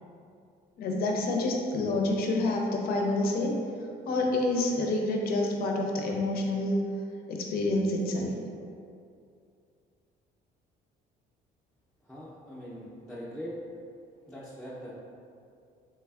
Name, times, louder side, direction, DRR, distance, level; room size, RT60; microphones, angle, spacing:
voice 1, 0.8-3.5 4.1-6.7 7.3-8.3, left 2 dB, 65° left, 0 dB, 0.5 m, -28 dB
voice 2, 12.0-13.6 14.3-15.0, equal, ahead, -9 dB, 0.5 m, -41 dB
3.2 x 3.2 x 2.3 m, 2.4 s
cardioid pair, 110°, 17 cm